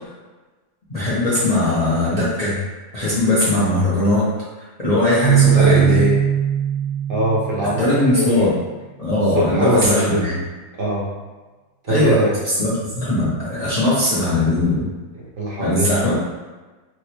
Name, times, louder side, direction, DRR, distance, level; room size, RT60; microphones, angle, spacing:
voice 1, 0.9-2.6 2.9-4.3 4.8-6.0 7.6-8.5 9.0-10.4 11.9-12.2 12.6-14.9 15.6-16.1, left 1 dB, 40° left, -10 dB, 0.5 m, -19 dB
Keyboard (musical), 5.2-8.1, right 9 dB, ahead, 0.6 m, -19 dB
voice 2, 5.5-6.2 7.1-8.5 9.3-10.3 10.8-11.1 11.8-12.4 15.2-16.1, equal, 50° right, -6 dB, 0.7 m, -22 dB
4.5 x 2.1 x 2.9 m, 1.3 s
omnidirectional pair, 1.9 m